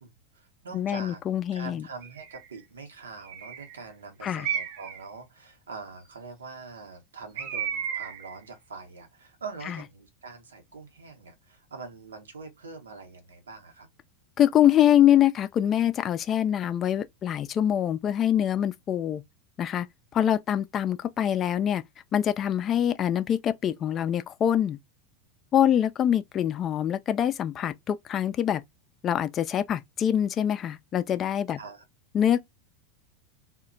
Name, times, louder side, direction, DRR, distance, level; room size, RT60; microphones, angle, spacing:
voice 1, 0.0-1.2 1.5-13.9 31.6-31.8, right 4 dB, 90° right, 0.8 m, -43 dB
voice 2, 0.7-1.9 4.2-4.5 9.7-9.8 14.4-19.2 19.6-19.9 20.1-21.8 22.1-24.8 25.5-28.6 29.0-31.6 32.1-32.5, left 10 dB, 35° left, 0.3 m, -24 dB
Bird, 2.0-2.5 3.2-3.8 4.4-5.0 7.4-8.4, right 8 dB, 60° right, 0.5 m, -33 dB
2.1 x 2.0 x 3.7 m
hypercardioid pair, 100°, 0 cm